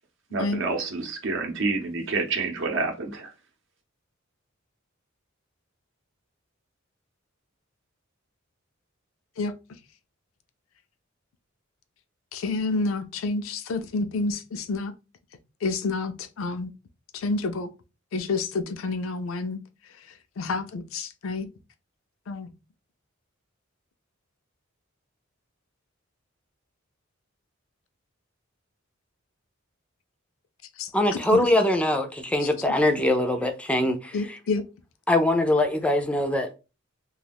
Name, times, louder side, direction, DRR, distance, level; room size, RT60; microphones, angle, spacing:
voice 1, 0.3-3.3, right 3 dB, 65° right, 0.7 m, -28 dB
voice 2, 12.3-14.9 15.6-16.7 17.1-17.7 18.1-19.6 20.4-21.5 22.3-22.5 30.8-30.9 31.3-31.5 34.1-34.6, left 3 dB, 75° left, 0.4 m, -29 dB
voice 3, 30.9-34.4 35.1-36.6, left 1 dB, 5° left, 0.4 m, -23 dB
2.4 x 2.3 x 3.3 m
head